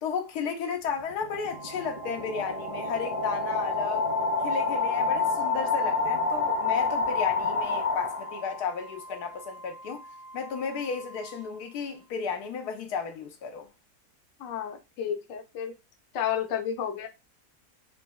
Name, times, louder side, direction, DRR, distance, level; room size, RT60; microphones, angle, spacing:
voice 1, 0.0-4.1 4.4-10.0 10.3-13.7, left 6 dB, 85° left, 1.2 m, -33 dB
sound 1, 0.9-8.7, left 3 dB, 35° left, 0.6 m, -28 dB
Organ, 1.5-12.2, right 1 dB, 55° right, 1.2 m, -47 dB
voice 2, 14.4-15.7 16.1-17.1, left 9 dB, 65° left, 0.9 m, -31 dB
4.0 x 2.6 x 2.2 m
omnidirectional pair, 1.7 m